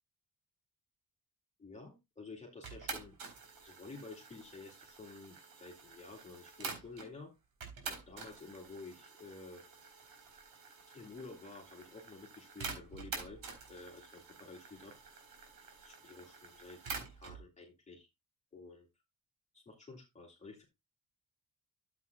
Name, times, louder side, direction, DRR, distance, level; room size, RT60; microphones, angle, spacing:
voice 1, 1.6-3.1 3.6-7.3 7.8-9.6 10.9-13.4 13.7-15.2 15.8-18.1 18.5-18.9 19.5-20.6, left 3 dB, 20° left, -1 dB, 2.5 m, -51 dB
sound 1, 2.6-7.1 7.6-17.4, right 5 dB, 85° right, 4.2 m, -48 dB
13.5 x 8.3 x 2.3 m, 0.21 s
wide cardioid pair, 155°, 35 cm